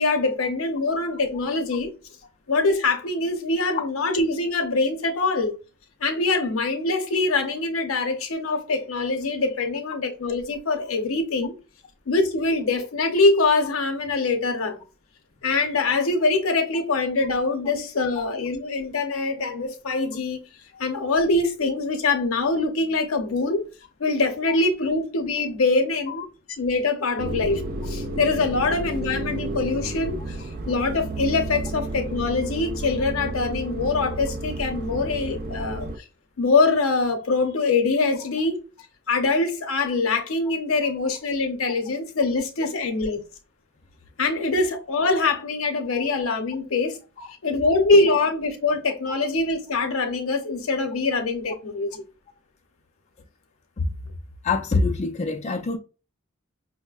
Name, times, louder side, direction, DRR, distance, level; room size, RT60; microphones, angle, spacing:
voice 1, 0.0-1.9 2.5-5.5 6.0-11.5 12.1-14.8 15.4-20.4 20.8-23.7 24.0-30.4 30.7-35.9 36.4-38.6 39.1-43.2 44.2-47.0 47.4-52.0, left 3 dB, 90° left, 0.7 m, -23 dB
sound 1, 27.2-36.0, right 2 dB, 45° right, 0.4 m, -31 dB
voice 2, 54.4-55.8, left 3 dB, 35° left, 0.4 m, -26 dB
5.2 x 2.1 x 2.3 m
head